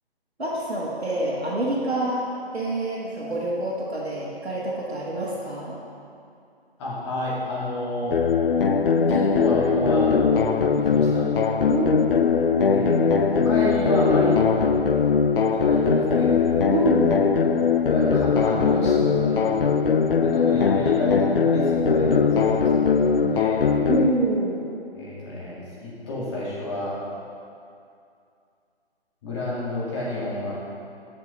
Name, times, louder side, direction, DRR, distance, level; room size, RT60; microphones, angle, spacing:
voice 1, 0.4-2.2 2.5-5.8 11.7-12.0 13.6-13.7 16.7-17.2 23.9-24.6, right 2 dB, 90° right, -7 dB, 1.9 m, -26 dB
voice 2, 6.8-8.2 9.1-10.1 10.9-11.2 12.6-13.0 13.3-14.4 15.5-16.4 17.1-19.5 20.2-23.7 24.9-27.0 29.2-30.5, left 1 dB, 25° left, -7 dB, 2.3 m, -29 dB
sound 1, 8.1-24.1, left 5 dB, 60° left, 0.6 m, -20 dB
7.5 x 6.5 x 5.3 m, 2.5 s
figure-of-eight pair, 150°, 31 cm